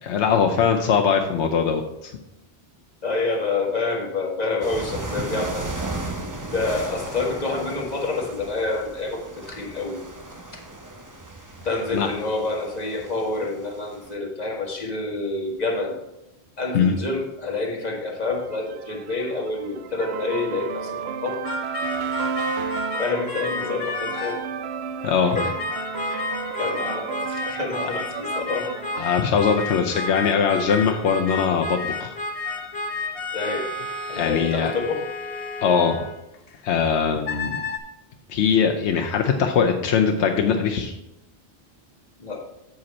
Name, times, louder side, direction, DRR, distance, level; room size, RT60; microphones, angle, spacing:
voice 1, 0.0-2.1 11.9-12.1 16.7-17.0 25.0-25.4 29.0-32.1 34.1-34.7 35.6-36.0 36.6-37.6 38.3-40.9, left 6 dB, 85° left, 3 dB, 1.0 m, -21 dB
voice 2, 3.0-5.7 6.5-10.0 10.5-10.6 11.6-16.0 16.6-21.4 22.6-24.4 25.3-25.5 26.1-28.7 33.3-33.7 34.1-35.0 42.2-42.4, left 3 dB, 40° left, 0 dB, 1.6 m, -28 dB
sound 1, 4.6-14.1, right 2 dB, 20° right, 0.7 m, -36 dB
sound 2, 18.4-30.2, right 6 dB, 70° right, 0.8 m, -33 dB
sound 3, 21.5-24.5 25.4-36.6 37.2-37.8, left 3 dB, 60° left, 1.0 m, -31 dB
7.7 x 7.2 x 4.2 m, 0.89 s
omnidirectional pair, 1.1 m